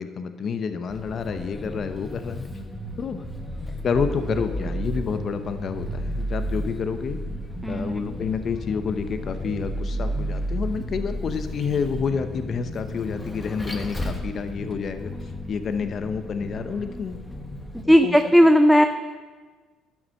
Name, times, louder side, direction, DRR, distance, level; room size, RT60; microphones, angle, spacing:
voice 1, 0.0-2.5 3.0-3.3 3.8-7.2 7.7-15.1 15.5-17.2 17.8-18.2 18.8-18.9, left 6 dB, 50° left, 9 dB, 0.7 m, -29 dB
Vehicle, 0.9-17.8, equal, 15° left, 1.3 m, -33 dB
voice 2, 7.6-8.0 17.9-18.9, equal, ahead, 8 dB, 0.5 m, -16 dB
11.0 x 5.9 x 6.4 m, 1.4 s
supercardioid pair, 75°, 0 cm